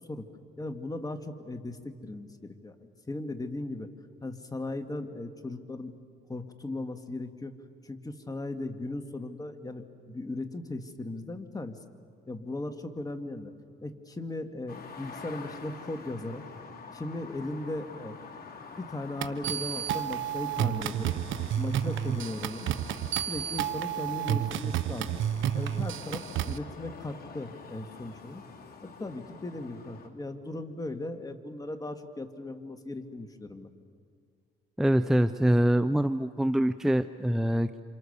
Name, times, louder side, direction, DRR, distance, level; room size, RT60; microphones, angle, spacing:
voice 1, 0.6-2.8 3.1-3.9 4.2-5.9 6.3-7.5 7.8-11.8 12.3-13.5 13.8-16.4 16.9-18.2 18.8-21.2 21.6-22.7 23.2-25.2 25.5-28.4 28.8-33.7, left 2 dB, 20° left, 6 dB, 2.0 m, -37 dB
sound 1, 14.7-30.1, left 5 dB, 50° left, 2.8 m, -47 dB
sound 2, 19.2-26.6, right 10 dB, 80° right, 1.0 m, -31 dB
voice 2, 34.8-37.8, right 1 dB, ahead, 11 dB, 0.5 m, -24 dB
28.5 x 27.0 x 6.8 m, 2.3 s
cardioid pair, 90°, 20 cm